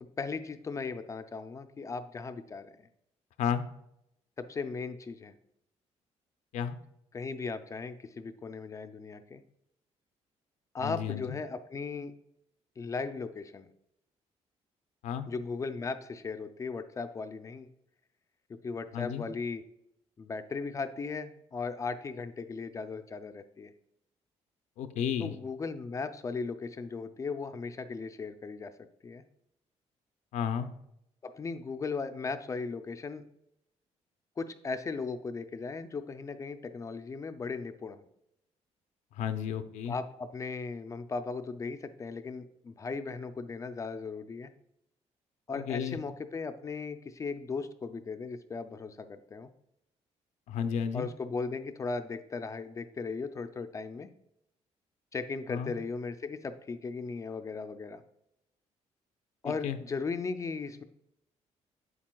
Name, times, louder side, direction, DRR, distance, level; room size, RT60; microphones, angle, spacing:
voice 1, 0.0-2.7 4.4-5.3 7.1-9.4 10.7-12.1 12.8-13.7 15.3-17.7 18.5-19.6 20.2-23.7 25.2-28.7 29.0-29.2 31.2-33.2 34.4-38.0 39.9-44.5 45.5-49.5 50.9-54.1 55.1-58.0 59.4-60.8, left 4 dB, 25° left, 9 dB, 0.4 m, -37 dB
voice 2, 10.8-11.3 15.0-15.2 18.9-19.3 24.8-25.3 30.3-30.7 39.2-40.0 45.5-46.0 50.5-51.1 55.5-55.8 59.4-59.8, left 8 dB, 85° left, 8 dB, 0.5 m, -32 dB
8.1 x 7.3 x 2.3 m, 0.78 s
cardioid pair, 140°, 12 cm